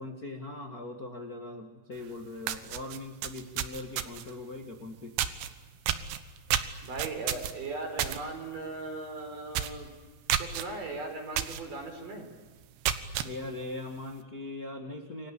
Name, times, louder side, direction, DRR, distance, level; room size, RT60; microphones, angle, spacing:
voice 1, 0.0-5.1 13.2-15.3, left 2 dB, 40° left, 3 dB, 1.3 m, -40 dB
sound 1, 2.0-2.1 2.4-4.3 5.2-5.5 5.9-8.2 8.5-8.8 9.1-9.2 9.5-9.8 10.3-10.6 11.4-11.6 12.1-12.2 12.6-13.3, right 11 dB, 80° right, 3.3 m, -30 dB
voice 2, 6.8-9.9 10.4-12.3, right 3 dB, 50° right, 4 dB, 6.3 m, -38 dB
29.0 x 23.0 x 8.5 m, 1.4 s
omnidirectional pair, 4.9 m